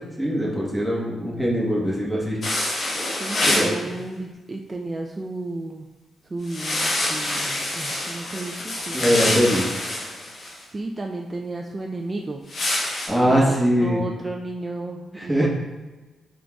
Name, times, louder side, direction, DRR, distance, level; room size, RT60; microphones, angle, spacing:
voice 1, 0.2-2.4 3.4-3.7 8.9-9.6 13.1-14.0 15.2-15.5, equal, ahead, -4 dB, 1.1 m, -21 dB
sound 1, 2.4-3.7 6.5-10.5 12.5-13.1, left 1 dB, 60° left, 1.1 m, -26 dB
voice 2, 3.2-5.9 6.3-9.3 10.7-12.4 13.3-15.5, right 2 dB, 30° right, 1 dB, 0.3 m, -33 dB
4.7 x 3.8 x 2.3 m, 1.2 s
cardioid pair, 70°, 0 cm